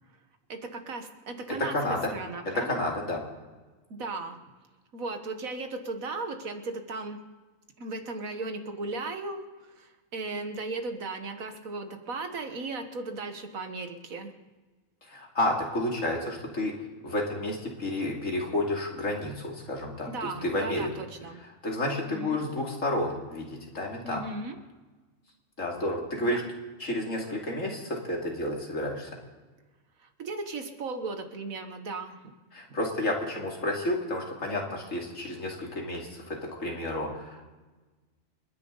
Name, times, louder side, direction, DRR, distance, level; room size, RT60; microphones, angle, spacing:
voice 1, 0.5-1.8 2.1-2.9 3.9-4.4 4.9-7.2 7.8-14.4 20.1-21.4 22.1-22.4 24.0-24.6 26.2-26.4 30.2-32.2, right 3 dB, 80° right, 7 dB, 1.9 m, -36 dB
voice 2, 1.7-2.1 2.6-3.2 15.1-16.7 17.0-20.9 21.6-24.2 25.6-26.4 26.8-29.1 32.5-36.2 36.6-37.5, left 1 dB, 70° left, -1 dB, 3.1 m, -31 dB
29.5 x 10.5 x 4.0 m, 1.3 s
omnidirectional pair, 1.4 m